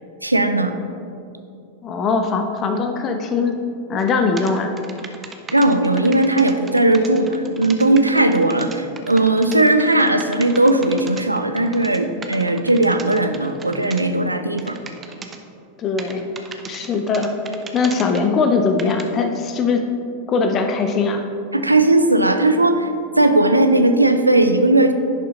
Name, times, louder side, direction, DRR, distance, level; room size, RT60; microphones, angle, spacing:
voice 1, 0.2-0.8 5.5-14.8 21.5-22.9 23.2-24.9, right 2 dB, 85° right, 8 dB, 0.5 m, -17 dB
voice 2, 1.8-3.5 3.9-4.7 15.8-16.3 16.7-17.3 17.7-19.8 20.3-21.2, left 4 dB, 30° left, 5 dB, 0.6 m, -20 dB
sound 1, 4.0-4.1 4.4-14.0 14.6-15.4 16.0-18.3 18.8-19.0, right 4 dB, 20° right, 0.7 m, -37 dB
10.5 x 5.6 x 3.7 m, 2.6 s
figure-of-eight pair, 90°, 0 cm